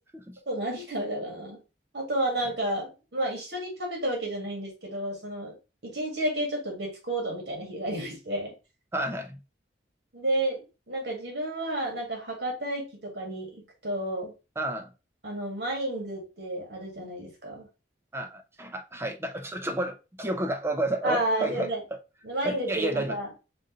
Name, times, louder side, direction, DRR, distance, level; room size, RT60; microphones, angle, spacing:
voice 1, 0.5-1.6 1.9-5.6 5.8-8.5 10.1-14.3 15.2-17.7 21.0-21.8 22.2-23.3, right 1 dB, 65° right, 1.9 m, -31 dB
voice 2, 8.9-9.4 14.6-14.9 18.1-21.7 22.4-23.2, right 1 dB, 15° right, 0.5 m, -31 dB
5.2 x 2.5 x 3.7 m
head